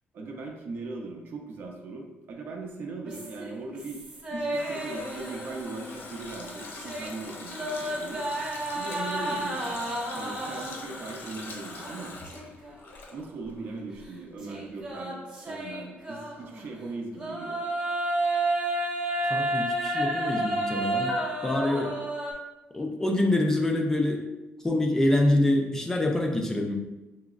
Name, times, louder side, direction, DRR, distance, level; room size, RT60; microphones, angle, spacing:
voice 1, 0.1-4.0 4.3-8.3 8.7-9.8 10.1-12.2 13.1-17.6, right 3 dB, 55° right, 1 dB, 0.6 m, -39 dB
sound 1, 3.1-6.0 6.3-11.0 11.7-12.7 13.1-13.2 14.4-16.6 17.1-22.3, right 1 dB, 30° right, 1.0 m, -31 dB
Water tap faucet, 4.0-13.6 13.9-14.0, left 3 dB, 55° left, 0.6 m, -43 dB
voice 2, 19.3-21.1 21.4-21.9 22.7-24.2 24.6-26.8, left 1 dB, 10° left, 1 dB, 0.4 m, -25 dB
5.0 x 3.0 x 2.4 m, 1.0 s
cardioid pair, 160°, 4 cm